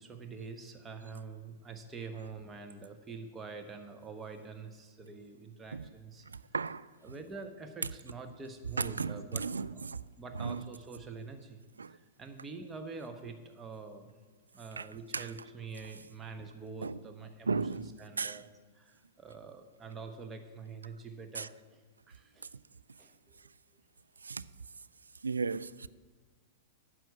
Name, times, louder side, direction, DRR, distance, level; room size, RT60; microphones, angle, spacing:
voice 1, 0.0-6.3 7.0-9.5 9.7-9.8 10.2-11.6 11.9-14.1 14.5-18.4 18.7-22.5 23.0-23.4, right 4 dB, 20° right, 1.1 m, -46 dB
voice 2, 6.3-6.9 8.8-10.1 10.3-10.6 11.8-12.0 14.8-14.9 15.1-15.3 16.8-17.0 17.5-18.4 21.3-21.5 24.2-24.4 25.2-25.9, right 4 dB, 85° right, 0.3 m, -35 dB
9.2 x 6.2 x 8.2 m
hypercardioid pair, 105°, 0 cm